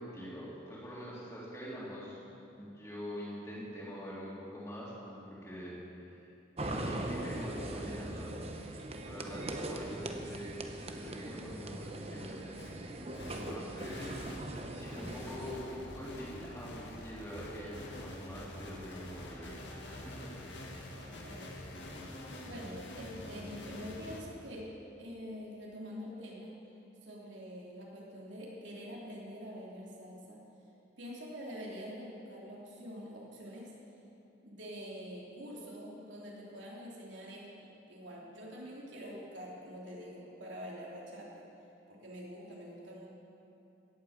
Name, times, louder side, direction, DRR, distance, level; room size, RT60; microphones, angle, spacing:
voice 1, 0.0-2.2 2.5-5.7 6.1-6.2 6.6-12.4 13.3-14.2 14.7-19.5 19.8-20.4, equal, 15° left, -7 dB, 3.3 m, -44 dB
sound 1, 6.6-15.5, right 1 dB, 35° right, 0.9 m, -40 dB
sound 2, 12.6-12.7 13.1-24.2, left 1 dB, 75° left, 2.1 m, -46 dB
voice 2, 20.9-22.0 22.4-26.6 27.0-30.4 31.0-33.7 34.4-41.4 41.9-43.1, equal, 80° right, -4 dB, 3.2 m, -46 dB
17.5 x 8.6 x 7.3 m, 2.8 s
head